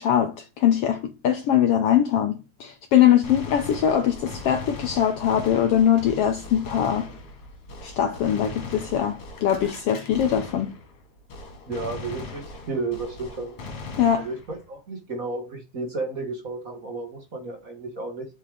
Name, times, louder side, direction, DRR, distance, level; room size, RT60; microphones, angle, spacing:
voice 1, 0.0-7.1 7.8-10.7 14.0-14.3, left 10 dB, 80° left, 1.3 m, -22 dB
Gunshot gunfire, 3.2-11.0 11.3-14.7, left 3 dB, 50° left, 2.6 m, -39 dB
voice 2, 11.7-13.5 14.2-18.2, right 3 dB, 30° right, 1.7 m, -32 dB
7.5 x 5.5 x 3.5 m
omnidirectional pair, 3.6 m